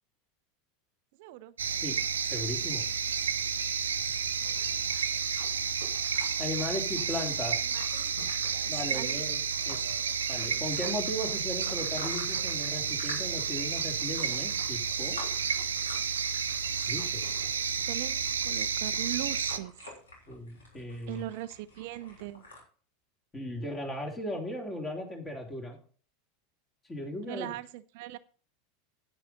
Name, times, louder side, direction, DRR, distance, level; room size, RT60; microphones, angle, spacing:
voice 1, 1.2-1.5 4.0-4.1 4.4-4.7 5.0-5.1 7.7-9.3 17.7-19.7 21.1-22.4 27.3-28.2, right 15 dB, 50° right, 14 dB, 0.5 m, -40 dB
sound 1, 1.6-19.6, right 6 dB, 70° right, 0.8 m, -31 dB
voice 2, 2.3-2.8 6.4-7.6 8.7-9.9 10.3-15.4 16.9-17.2 20.3-21.2 23.3-25.8 26.9-27.5, left 1 dB, 20° left, 2 dB, 3.4 m, -37 dB
sound 2, 4.3-22.6, left 2 dB, 70° left, 3.6 m, -49 dB
10.0 x 9.8 x 4.1 m, 0.40 s
figure-of-eight pair, 80°, 0 cm